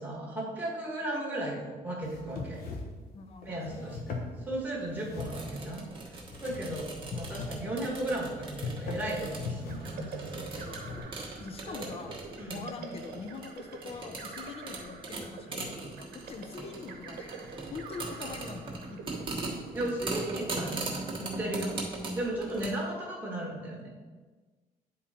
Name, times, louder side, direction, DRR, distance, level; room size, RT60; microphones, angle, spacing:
voice 1, 0.0-2.6 3.4-4.2 4.4-6.9 7.1-10.7 11.6-11.9 12.4-12.7 19.7-20.9 21.2-21.8 22.1-23.9, right 1 dB, 10° right, -4 dB, 1.5 m, -35 dB
sound 1, 2.0-11.0, left 4 dB, 75° left, 1.1 m, -41 dB
voice 2, 3.1-4.2 6.6-7.0 10.6-10.8 11.4-12.2 12.5-19.3, left 5 dB, 40° left, 7 dB, 0.6 m, -44 dB
sound 2, 5.2-22.7, right 3 dB, 30° right, 1.2 m, -40 dB
sound 3, 9.7-20.3, right 4 dB, 80° right, 0.9 m, -46 dB
9.2 x 3.8 x 4.2 m, 1.3 s
cardioid pair, 170°, 16 cm